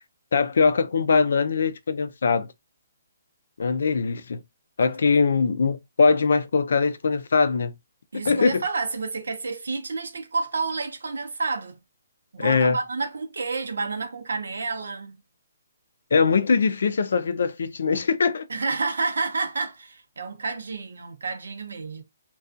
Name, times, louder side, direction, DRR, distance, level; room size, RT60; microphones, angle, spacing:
voice 1, 0.3-2.5 3.6-4.4 4.8-7.7 8.2-8.6 12.4-12.8 16.1-18.5, left 5 dB, 70° left, 0.4 m, -21 dB
voice 2, 8.1-11.8 12.3-15.2 18.5-22.0, right 4 dB, 90° right, 0.7 m, -30 dB
2.4 x 2.2 x 2.5 m
hypercardioid pair, 165°, 0 cm